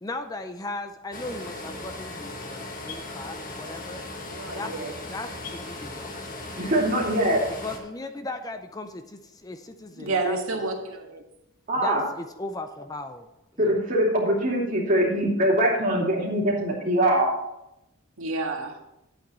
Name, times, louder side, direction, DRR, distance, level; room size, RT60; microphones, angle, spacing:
voice 1, 0.0-4.0 4.5-6.7 7.6-10.4 11.8-13.3 13.6-13.7, left 2 dB, 15° left, 8 dB, 0.5 m, -37 dB
sound 1, 1.1-7.8, left 2 dB, 40° left, 1.5 m, -37 dB
voice 2, 4.3-4.9 9.9-11.2 18.2-18.7, right 3 dB, 75° right, 1 dB, 1.8 m, -30 dB
voice 3, 6.6-7.4 11.7-12.0 13.6-17.3, right 1 dB, 40° right, -3 dB, 2.7 m, -23 dB
10.5 x 8.5 x 4.2 m, 0.88 s
head